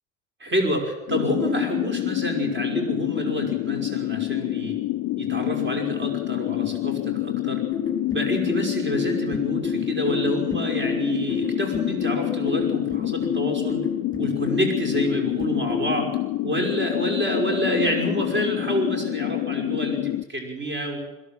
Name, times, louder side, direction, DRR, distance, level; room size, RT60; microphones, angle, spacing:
voice 1, 0.4-4.7 5.2-7.6 8.1-13.8 14.2-16.1 16.4-21.0, equal, 30° right, 3 dB, 5.5 m, -28 dB
sound 1, 1.1-20.2, left 17 dB, 50° left, 0.6 m, -27 dB
sound 2, 7.7-15.9, left 4 dB, 10° left, 5.1 m, -31 dB
21.5 x 16.0 x 7.6 m, 1.1 s
hypercardioid pair, 70°, 38 cm